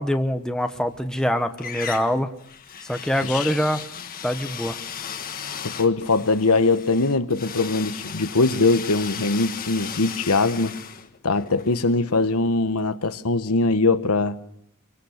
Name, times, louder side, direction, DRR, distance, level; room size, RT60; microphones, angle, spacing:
voice 1, 0.0-2.3 2.8-3.8 4.2-4.8, equal, 5° left, 1.1 m, -24 dB
sound 1, 0.7-1.3 1.6-12.5, left 7 dB, 40° left, 1.6 m, -36 dB
voice 2, 3.2-3.5 5.6-10.8 11.2-14.4, left 3 dB, 85° left, 1.3 m, -21 dB
27.0 x 23.0 x 6.6 m
head